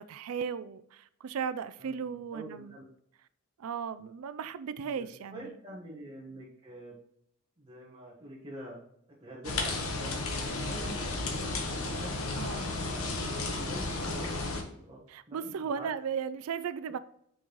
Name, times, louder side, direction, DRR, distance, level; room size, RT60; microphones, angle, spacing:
voice 1, 0.0-2.8 3.6-5.5 12.4-12.7 15.1-17.0, right 7 dB, 80° right, 0.4 m, -36 dB
voice 2, 1.8-2.8 4.8-6.9 7.6-8.8 9.2-13.2 13.5-15.9, right 1 dB, 25° right, 1.4 m, -46 dB
sound 1, 9.4-14.6, left 2 dB, 75° left, 1.2 m, -33 dB
6.2 x 5.2 x 3.0 m
head